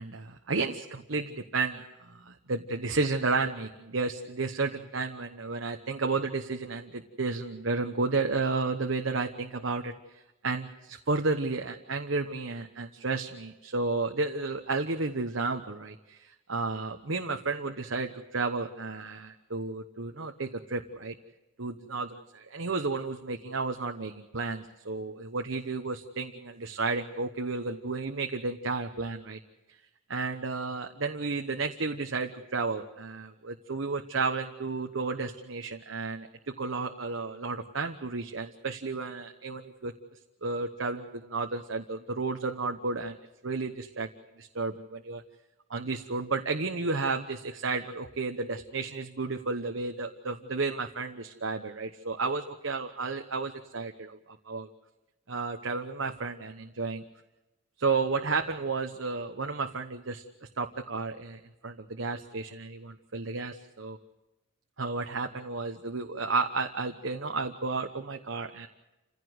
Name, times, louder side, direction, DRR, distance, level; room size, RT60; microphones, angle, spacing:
voice 1, 0.0-9.9 10.4-21.1 21.6-29.4 30.1-39.9 40.4-43.2 43.4-44.1 44.4-45.2 45.7-54.7 55.3-57.0 57.8-60.2 60.6-64.0 64.8-68.7, right 3 dB, 70° right, 4 dB, 1.1 m, -32 dB
28.5 x 16.0 x 8.0 m, 1.0 s
head